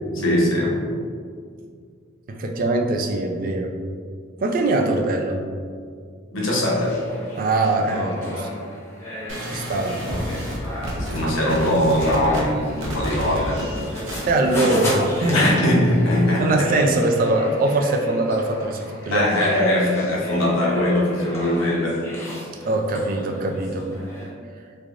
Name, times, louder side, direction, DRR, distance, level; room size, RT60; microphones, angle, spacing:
voice 1, 0.1-0.8 6.3-7.1 9.8-9.9 11.0-13.7 15.3-16.7 19.1-22.0, left 1 dB, 75° left, -4 dB, 0.8 m, -21 dB
voice 2, 2.3-3.7 4.4-5.4 7.3-8.5 9.4-10.2 14.3-15.4 16.2-19.3 22.7-23.9, right 2 dB, 45° right, 2 dB, 0.3 m, -22 dB
sound 1, 6.6-24.3, left 1 dB, 15° left, 0.8 m, -34 dB
sound 2, 9.3-15.4, equal, 75° right, 0.7 m, -30 dB
3.5 x 3.2 x 2.4 m, 2.1 s
head